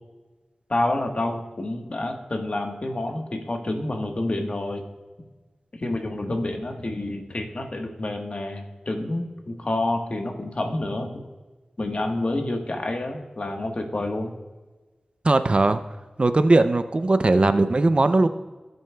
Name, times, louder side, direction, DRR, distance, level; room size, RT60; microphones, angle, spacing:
voice 1, 0.7-4.8 5.7-11.2 11.8-14.3, left 2 dB, 55° left, 3 dB, 1.3 m, -28 dB
voice 2, 15.2-15.8 16.2-18.3, right 2 dB, 45° right, 10 dB, 0.5 m, -19 dB
18.5 x 7.9 x 2.3 m, 1.3 s
wide cardioid pair, 75°, 3 cm